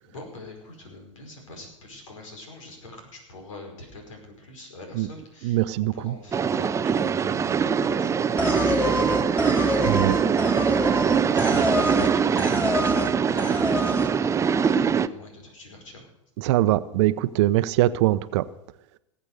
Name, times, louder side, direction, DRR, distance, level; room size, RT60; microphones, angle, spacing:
voice 1, 0.0-16.1, left 2 dB, 80° left, 3 dB, 4.9 m, -44 dB
voice 2, 5.4-6.1 9.8-10.2 16.4-18.4, right 15 dB, 60° right, 15 dB, 0.7 m, -22 dB
sound 1, 6.3-15.1, right 6 dB, 20° right, 0.5 m, -23 dB
sound 2, 8.4-12.1 12.4-13.1 13.4-14.1, left 1 dB, 10° left, 2.8 m, -27 dB
18.5 x 8.1 x 6.5 m, 0.84 s
hypercardioid pair, 95°, 16 cm